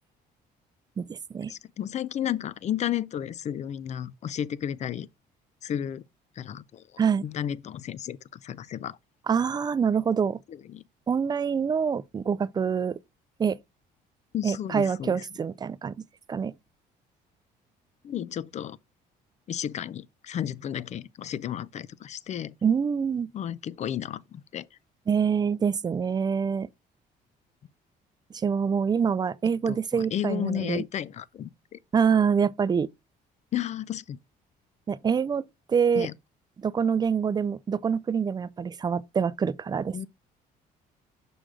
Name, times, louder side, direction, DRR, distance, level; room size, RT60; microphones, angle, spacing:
voice 1, 1.0-1.5 7.0-7.3 9.3-10.4 11.1-13.0 13.4-13.6 14.4-16.0 16.3-16.5 22.6-23.3 25.1-26.7 28.4-30.8 31.9-32.9 34.9-35.4 35.7-36.1 36.6-40.1, right 6 dB, 25° right, 0.4 m, -25 dB
voice 2, 1.5-5.1 5.6-6.0 6.4-9.0 10.5-10.8 14.3-15.2 18.0-18.8 19.5-22.5 23.3-24.7 29.7-31.8 33.5-34.2 36.0-36.1 39.9-40.1, left 10 dB, 45° left, 0.5 m, -33 dB
6.3 x 5.1 x 3.7 m
cardioid pair, 110°, 17 cm